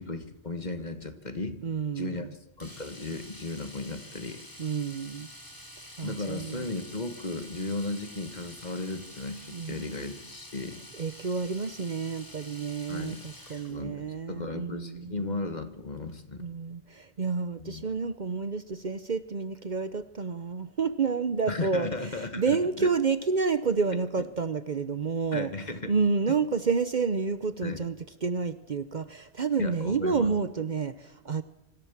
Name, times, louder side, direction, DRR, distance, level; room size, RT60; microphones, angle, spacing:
voice 1, 0.0-1.6 1.9-2.3 2.6-4.4 6.0-10.8 12.9-13.2 13.7-16.4 17.6-17.8 21.5-22.9 25.3-25.9 27.6-27.8 29.6-30.3, left 3 dB, 40° left, 8 dB, 1.6 m, -35 dB
voice 2, 1.6-2.3 4.6-5.3 6.0-6.6 9.5-9.9 10.9-15.2 16.4-21.9 22.1-25.5 25.9-28.0 28.2-31.4, right 5 dB, 45° right, 12 dB, 0.9 m, -29 dB
Domestic sounds home sounds, 2.6-13.8 16.0-16.1 16.4-16.5, left 1 dB, 20° left, 2.8 m, -48 dB
25.0 x 14.5 x 7.2 m, 0.99 s
omnidirectional pair, 1.2 m